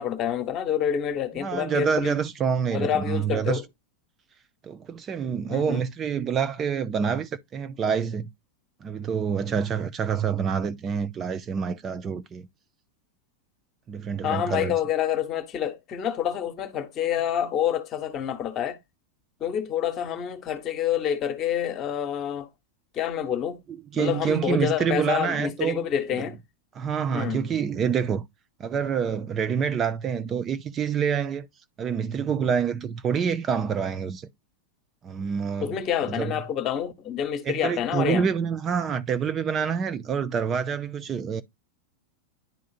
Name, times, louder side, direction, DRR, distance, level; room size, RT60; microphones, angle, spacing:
voice 1, 0.0-2.2 2.7-3.6 5.5-5.9 14.2-18.8 19.4-22.5 22.9-23.6 23.9-26.4 27.1-27.5 35.6-38.3, left 9 dB, 30° left, 1.2 m, -27 dB
voice 2, 1.4-3.6 4.6-8.3 8.8-12.5 13.9-14.8 23.9-25.9 26.7-28.2 28.6-31.5 31.8-34.3 35.0-35.8 36.1-36.4 37.4-41.4, right 7 dB, 25° right, 0.5 m, -27 dB
10.5 x 3.7 x 2.4 m
figure-of-eight pair, 90°, 0 cm